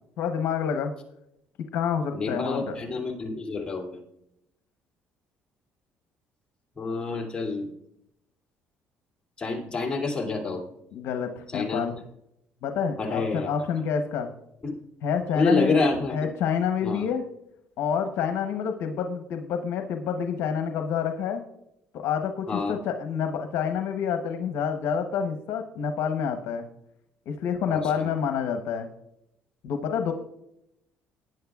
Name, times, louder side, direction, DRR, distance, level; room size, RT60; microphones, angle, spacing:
voice 1, 0.2-0.9 1.7-2.8 10.9-12.0 12.6-14.3 15.0-15.8 16.1-17.2 17.8-21.4 21.9-26.7 27.3-28.9 29.6-30.1, left 7 dB, 75° left, 6 dB, 0.9 m, -28 dB
voice 2, 2.1-4.0 6.7-7.7 9.4-10.7 11.5-12.0 13.0-13.5 14.6-14.7 15.3-16.3 16.8-17.0 22.5-22.8 27.7-28.1, left 3 dB, 20° left, -1 dB, 2.6 m, -28 dB
18.5 x 9.5 x 2.4 m, 0.80 s
cardioid pair, 100°, 4 cm